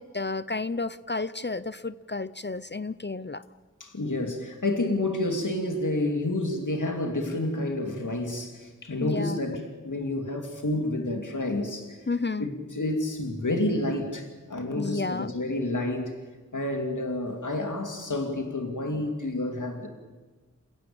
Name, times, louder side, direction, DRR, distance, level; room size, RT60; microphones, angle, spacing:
voice 1, 0.0-3.4 9.0-9.4 12.1-12.5 14.7-15.3, left 3 dB, 35° left, 14 dB, 0.7 m, -31 dB
voice 2, 3.8-12.1 12.4-16.2 16.5-19.9, left 1 dB, 80° left, 4 dB, 2.8 m, -29 dB
29.0 x 16.0 x 8.7 m, 1.3 s
wide cardioid pair, 50°, 30 cm